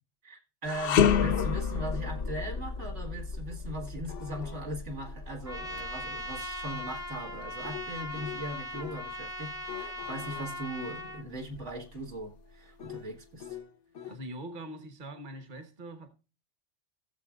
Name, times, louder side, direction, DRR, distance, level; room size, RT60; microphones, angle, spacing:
voice 1, 0.2-13.6, right 1 dB, 75° right, 2.0 m, -39 dB
sound 1, 0.6-9.9 10.3-10.5 11.4-12.2, left 7 dB, 60° left, 0.8 m, -31 dB
sound 2, 4.0-9.1 9.5-14.2, left 10 dB, 75° left, 1.3 m, -48 dB
Trumpet, 5.4-11.2, left 1 dB, 5° right, 0.7 m, -39 dB
voice 2, 14.1-16.1, right 1 dB, 45° right, 1.3 m, -43 dB
16.5 x 7.1 x 2.4 m
omnidirectional pair, 1.2 m